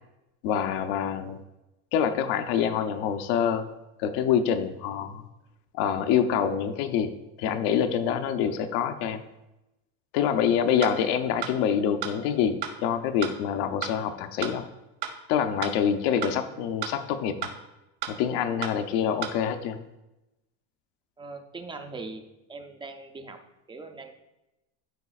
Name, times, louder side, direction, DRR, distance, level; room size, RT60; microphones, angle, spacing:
voice 1, 0.4-1.4 1.9-3.6 4.0-5.2 5.7-7.1 7.4-9.2 10.1-14.6 15.3-17.5 18.1-19.8, left 8 dB, 75° left, 9 dB, 0.8 m, -26 dB
sound 1, 10.8-10.9 11.4-11.5 12.0-12.1 12.6-12.7 13.2-13.3 13.8-13.9 14.4-14.5 15.0-15.1 15.6-15.7 16.2-16.3 16.8-16.9 17.4-17.5 18.0-18.1 18.6-18.7 19.2-19.3, right 10 dB, 85° right, 1.4 m, -32 dB
voice 2, 21.2-22.2 22.5-23.4 23.7-24.1, right 3 dB, 15° right, 5 dB, 0.4 m, -40 dB
12.5 x 4.9 x 2.4 m, 0.96 s
cardioid pair, 150°, 41 cm